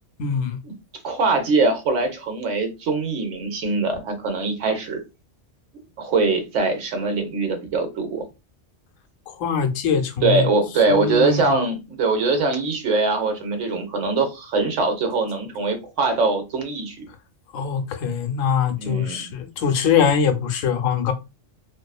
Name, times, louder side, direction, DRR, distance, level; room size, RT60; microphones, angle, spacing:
voice 1, 0.2-0.6 9.3-10.5 10.9-11.5 17.5-21.1, left 7 dB, 85° left, 1.0 m, -22 dB
voice 2, 1.0-5.0 5.7-8.2 10.2-17.0 18.8-19.2, right 3 dB, 75° right, 1.0 m, -22 dB
2.6 x 2.4 x 2.3 m
omnidirectional pair, 1.3 m